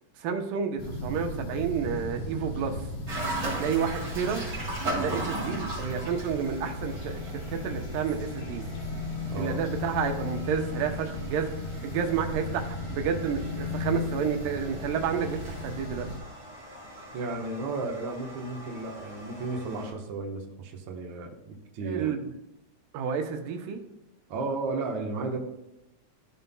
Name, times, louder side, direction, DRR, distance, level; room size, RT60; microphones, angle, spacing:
voice 1, 0.2-2.8 3.4-4.5 5.0-8.6 9.4-11.5 11.8-16.1 21.8-22.2 22.9-23.8, right 7 dB, 90° right, 5 dB, 2.5 m, -30 dB
sound 1, 0.8-16.2, left 2 dB, 70° left, 2.9 m, -36 dB
sound 2, 3.1-19.9, right 2 dB, 35° right, 2.8 m, -39 dB
voice 2, 17.1-22.1 24.3-25.4, right 3 dB, 65° right, 0 dB, 1.2 m, -34 dB
13.5 x 5.4 x 2.2 m, 0.90 s
omnidirectional pair, 3.8 m